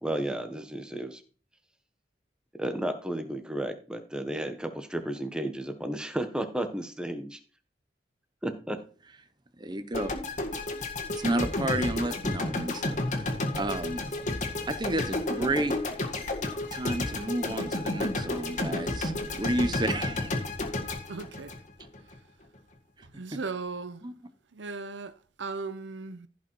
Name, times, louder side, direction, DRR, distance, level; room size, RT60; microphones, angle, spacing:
voice 1, 0.0-1.2 2.6-7.4 8.4-8.8, right 1 dB, 5° right, 1.1 m, -33 dB
voice 2, 9.6-10.1 11.2-13.3 13.5-14.0 14.7-15.8 16.7-19.1 19.4-20.3 24.0-24.1, right 1 dB, 25° right, 0.7 m, -31 dB
sound 1, 9.9-22.2, left 2 dB, 40° left, 1.9 m, -32 dB
voice 3, 21.1-21.5 23.0-24.0 24.6-26.3, right 4 dB, 85° right, 0.8 m, -37 dB
15.0 x 5.2 x 4.6 m
head